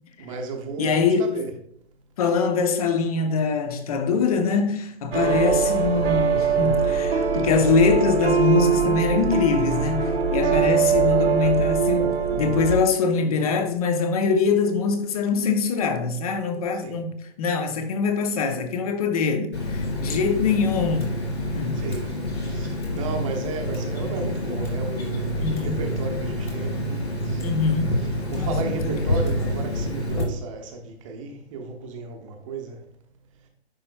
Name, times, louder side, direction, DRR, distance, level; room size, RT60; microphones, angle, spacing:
voice 1, 0.2-1.5 10.4-10.7 16.8-17.0 21.7-22.1 22.5-27.4 28.3-32.8, right 3 dB, 30° right, 1.0 m, -34 dB
voice 2, 0.8-1.4 2.2-21.2 21.5-21.9 25.4-25.8 27.4-27.9 28.3-29.1, left 5 dB, 35° left, 0.8 m, -23 dB
sound 1, 5.1-12.8, right 6 dB, 65° right, 1.2 m, -22 dB
Water tap faucet, 19.5-30.2, left 1 dB, 80° left, 2.7 m, -27 dB
10.5 x 4.2 x 2.2 m
figure-of-eight pair, 135°, 33 cm